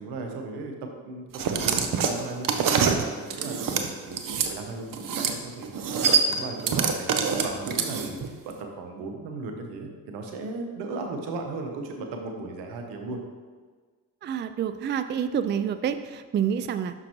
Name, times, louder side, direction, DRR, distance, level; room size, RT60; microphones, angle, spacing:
voice 1, 0.0-5.7 5.9-13.2, right 3 dB, 85° right, 3 dB, 0.9 m, -36 dB
sound 1, 1.3-4.5 4.9-5.4 5.6-8.3, right 6 dB, 55° right, 0.8 m, -25 dB
voice 2, 14.2-17.1, right 8 dB, 30° right, 11 dB, 0.4 m, -28 dB
6.2 x 6.0 x 3.0 m, 1.5 s
supercardioid pair, 55°, 38 cm